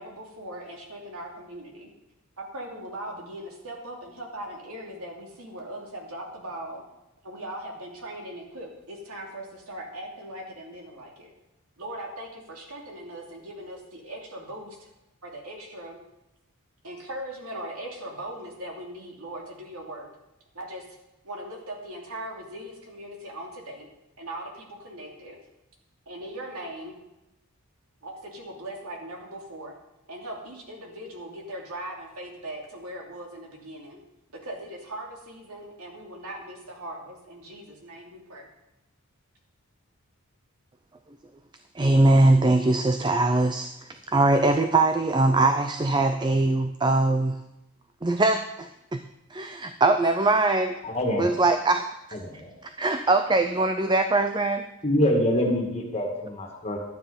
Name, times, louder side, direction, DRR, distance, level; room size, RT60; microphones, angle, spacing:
voice 1, 0.0-1.9 2.4-6.8 7.2-11.3 11.8-14.9 15.2-16.0 16.8-20.1 20.5-20.8 21.2-23.9 24.2-25.4 26.1-27.0 28.0-29.7 30.1-34.0 34.4-38.5, right 1 dB, 75° right, 0 dB, 2.8 m, -39 dB
voice 2, 41.7-43.7 44.1-47.4 48.0-49.0 49.3-50.8 51.2-52.2 52.6-54.6, right 2 dB, 20° right, 8 dB, 0.4 m, -22 dB
voice 3, 50.8-51.3 52.2-52.5 54.8-56.8, left 1 dB, 30° left, 0 dB, 2.1 m, -25 dB
12.0 x 9.3 x 5.2 m, 0.91 s
head